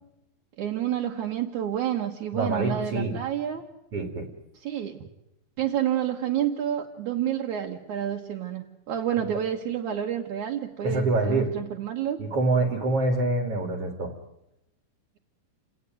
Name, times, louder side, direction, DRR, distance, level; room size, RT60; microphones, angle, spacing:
voice 1, 0.6-3.6 4.5-5.0 5.6-12.2, right 10 dB, 65° right, -1 dB, 2.8 m, -29 dB
voice 2, 2.3-3.2 3.9-4.3 10.8-11.5 12.2-14.1, right 2 dB, 50° right, 5 dB, 2.8 m, -25 dB
29.5 x 18.0 x 9.3 m, 0.87 s
omnidirectional pair, 3.9 m